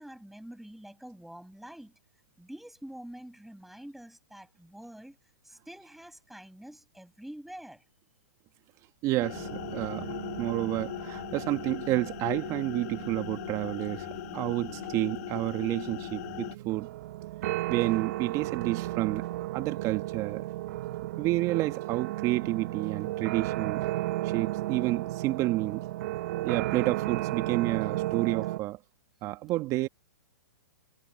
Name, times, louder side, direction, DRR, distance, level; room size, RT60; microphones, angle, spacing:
voice 1, 0.0-1.9 2.4-5.2 5.4-7.8, right 1 dB, ahead, 7.8 m, -46 dB
voice 2, 9.0-10.1 10.4-14.1 14.3-16.9 17.7-19.3 19.5-20.5 21.2-23.9 24.2-25.8 26.4-28.8 29.2-29.9, right 18 dB, 35° right, 1.8 m, -30 dB
sound 1, 9.2-16.6, left 15 dB, 55° left, 3.1 m, -39 dB
sound 2, 9.3-28.6, right 16 dB, 55° right, 2.2 m, -35 dB
hypercardioid pair, 135°, 10 cm